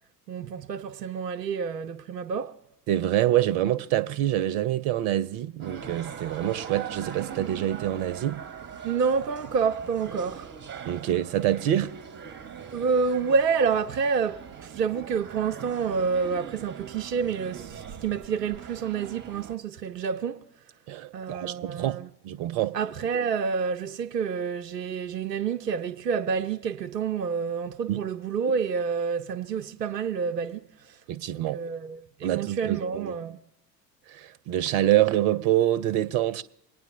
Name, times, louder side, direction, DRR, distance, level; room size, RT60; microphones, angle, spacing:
voice 1, 0.3-2.6 8.8-10.5 12.7-20.4 21.1-22.1 22.7-31.0 31.3-33.4, right 5 dB, 85° right, 0.6 m, -28 dB
voice 2, 2.9-8.4 10.8-11.9 20.9-22.7 27.9-28.0 31.1-31.6 32.2-33.2 34.1-36.4, right 13 dB, 50° right, 0.8 m, -26 dB
sound 1, 5.6-19.5, right 7 dB, 25° right, 1.0 m, -41 dB
26.5 x 9.3 x 2.7 m
figure-of-eight pair, 70°, 48 cm